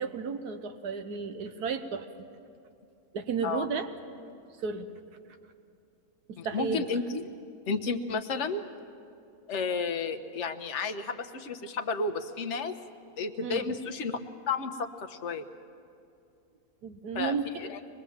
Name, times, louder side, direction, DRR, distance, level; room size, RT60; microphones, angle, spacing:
voice 1, 0.0-2.3 3.1-3.9 4.6-4.9 6.3-6.9 13.4-13.7 16.8-17.7, right 5 dB, 90° right, 8 dB, 1.6 m, -33 dB
voice 2, 6.4-7.3 7.7-8.6 9.5-12.7 13.2-14.2 14.5-15.4 17.1-17.8, left 4 dB, 50° left, 6 dB, 1.3 m, -32 dB
25.0 x 20.5 x 7.2 m, 2.6 s
omnidirectional pair, 1.6 m